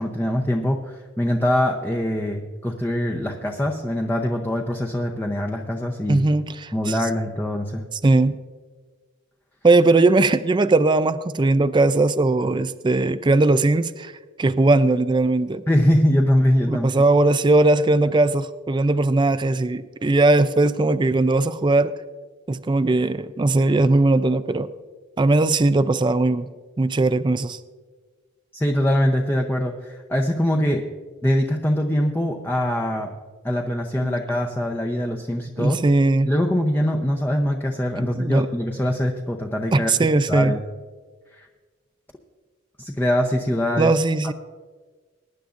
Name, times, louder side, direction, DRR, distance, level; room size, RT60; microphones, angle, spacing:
voice 1, 0.0-6.3 6.7-7.9 15.7-16.9 28.5-30.8 31.2-33.1 33.4-35.8 36.2-39.9 40.3-40.6 41.3-41.5 42.8-43.9, equal, 10° left, 0 dB, 0.7 m, -23 dB
voice 2, 6.1-7.0 7.9-8.4 9.6-14.1 14.4-15.6 16.7-21.9 22.5-24.7 25.2-26.5 26.8-27.6 34.0-34.2 35.6-36.3 38.0-38.5 39.7-40.5 43.8-44.3, right 2 dB, 25° right, 12 dB, 0.4 m, -19 dB
22.5 x 10.5 x 2.5 m, 1.4 s
head